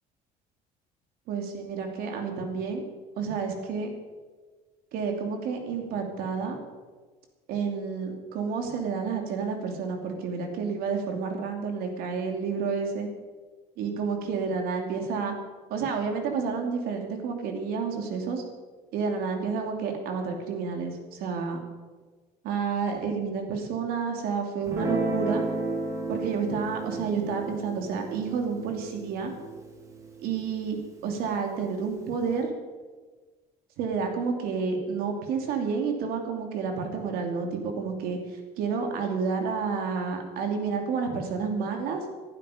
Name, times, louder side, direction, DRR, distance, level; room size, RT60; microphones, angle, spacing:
voice 1, 1.3-2.8 3.2-3.9 4.9-6.6 7.5-13.1 13.8-15.4 15.7-18.4 18.9-21.6 22.4-25.4 26.1-29.3 30.2-30.8 31.0-32.5 33.8-42.0, right 5 dB, 70° right, 4 dB, 2.7 m, -30 dB
Guitar, 24.6-31.2, right 2 dB, 20° right, 2.1 m, -33 dB
19.0 x 12.0 x 5.1 m, 1.4 s
cardioid pair, 175°, 16 cm